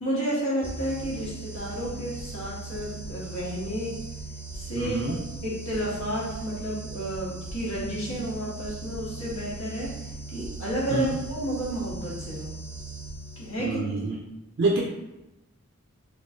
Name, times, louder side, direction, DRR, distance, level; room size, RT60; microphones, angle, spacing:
voice 1, 0.0-3.9 4.5-9.9 10.3-12.6 13.4-13.8, equal, 85° left, -6 dB, 1.3 m, -31 dB
sound 1, 0.6-13.8, right 3 dB, 10° left, 0.6 m, -39 dB
voice 2, 4.7-5.2 10.9-11.2 13.6-14.2 14.6-14.8, right 3 dB, 55° right, -2 dB, 0.4 m, -26 dB
3.5 x 3.1 x 2.6 m, 0.96 s
head